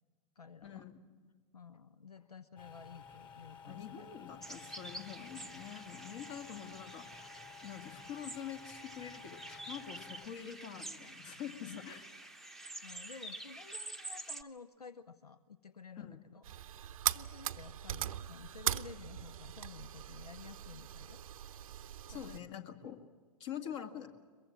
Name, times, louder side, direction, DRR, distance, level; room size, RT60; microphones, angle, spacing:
voice 1, 0.4-0.9 1.5-4.1 11.6-11.8 12.8-16.4 16.7-21.2 22.1-22.5, left 5 dB, 85° left, 15 dB, 0.7 m, -52 dB
sound 1, 2.6-10.3, left 6 dB, 25° left, 3.0 m, -54 dB
voice 2, 3.7-7.1 7.6-12.0 16.0-16.2 22.1-23.1 23.4-24.1, left 9 dB, 50° left, 6 dB, 2.1 m, -45 dB
sound 2, 4.4-14.4, right 1 dB, ahead, 0.9 m, -48 dB
sound 3, 16.4-22.4, right 11 dB, 60° right, 0.7 m, -40 dB
22.5 x 22.5 x 7.6 m, 1.5 s
figure-of-eight pair, 100°, 19 cm